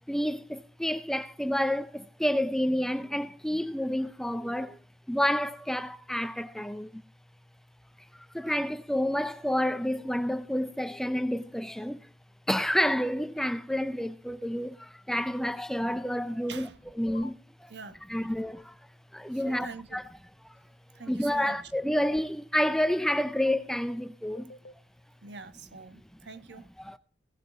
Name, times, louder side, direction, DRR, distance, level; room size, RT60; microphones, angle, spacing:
voice 1, 0.1-4.8 5.1-7.0 8.1-12.1 12.5-16.7 17.0-17.7 18.1-18.8 19.1-20.0 20.4-20.6 21.1-24.5 26.8-27.0, equal, 5° left, 0.6 m, -29 dB
sound 1, 17.1-17.3 19.5-19.7 21.9-22.2 24.3-24.7, left 2 dB, 45° left, 0.7 m, -46 dB
voice 2, 17.7-18.0 19.3-20.0 20.9-21.6 25.2-26.7, right 4 dB, 75° right, 1.2 m, -45 dB
17.5 x 7.2 x 5.0 m
head